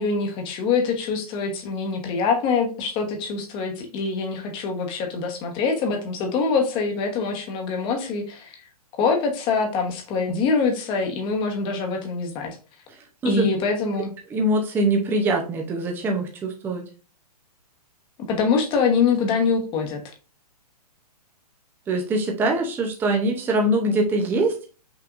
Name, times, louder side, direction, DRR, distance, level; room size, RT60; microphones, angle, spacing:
voice 1, 0.0-8.6 9.0-12.6 13.2-14.1 18.3-20.0, left 5 dB, 25° left, 3 dB, 1.1 m, -24 dB
voice 2, 14.3-16.8 21.9-24.7, right 2 dB, 10° right, 1 dB, 0.6 m, -23 dB
5.9 x 3.3 x 2.5 m, 0.35 s
hypercardioid pair, 145°, 21 cm